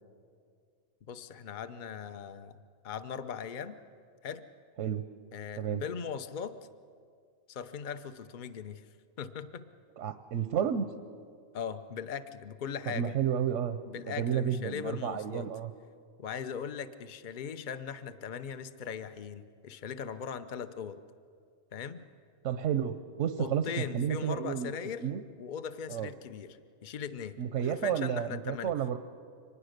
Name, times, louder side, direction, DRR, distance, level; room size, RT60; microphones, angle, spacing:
voice 1, 1.1-2.5 2.8-3.7 4.2-4.4 5.3-6.6 7.5-8.8 9.2-9.7 11.5-13.2 13.9-15.5 16.2-21.0 21.7-22.0 23.4-25.1 25.4-28.7, left 7 dB, 45° left, 11 dB, 0.8 m, -39 dB
voice 2, 10.0-10.9 12.9-13.8 14.1-15.7 22.4-24.7 25.0-25.2 25.9-26.1 27.4-29.0, right 8 dB, 90° right, 10 dB, 1.1 m, -31 dB
24.5 x 19.5 x 6.6 m, 2.2 s
omnidirectional pair, 1.2 m